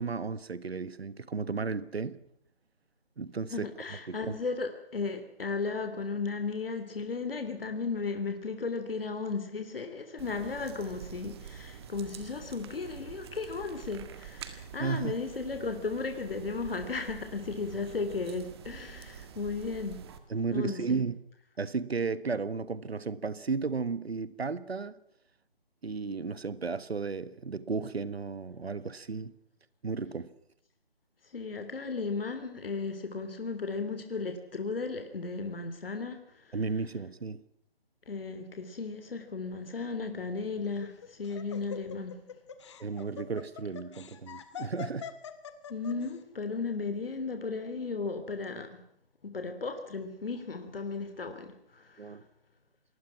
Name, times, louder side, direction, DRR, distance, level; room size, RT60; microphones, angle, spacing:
voice 1, 0.0-2.2 3.2-3.7 4.1-4.3 14.8-15.1 20.3-21.2 21.6-24.9 25.8-29.3 29.8-30.3 36.5-37.4 42.8-45.1 52.0-52.2, right 4 dB, 80° right, 1.5 m, -34 dB
voice 2, 3.5-20.0 20.5-21.0 31.3-36.6 38.1-42.2 45.7-48.8 49.2-52.2, left 4 dB, 65° left, 3.3 m, -35 dB
sound 1, 10.2-20.2, right 7 dB, 25° right, 1.9 m, -47 dB
Laughter, 40.6-46.1, left 8 dB, 30° left, 1.8 m, -43 dB
27.5 x 20.0 x 6.0 m
figure-of-eight pair, 160°, 31 cm